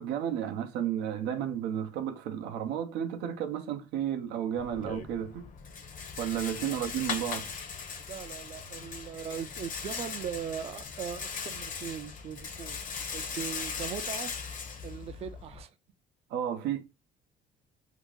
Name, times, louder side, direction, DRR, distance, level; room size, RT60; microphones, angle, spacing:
voice 1, 0.0-5.5 6.2-7.5 16.3-16.8, right 9 dB, 90° right, 0.6 m, -32 dB
Rattle, 4.6-15.6, left 5 dB, 50° left, 0.7 m, -39 dB
voice 2, 8.1-12.8 13.1-14.3 14.8-15.7, right 8 dB, 35° right, 0.4 m, -39 dB
2.8 x 2.4 x 3.6 m
cardioid pair, 110°, 17 cm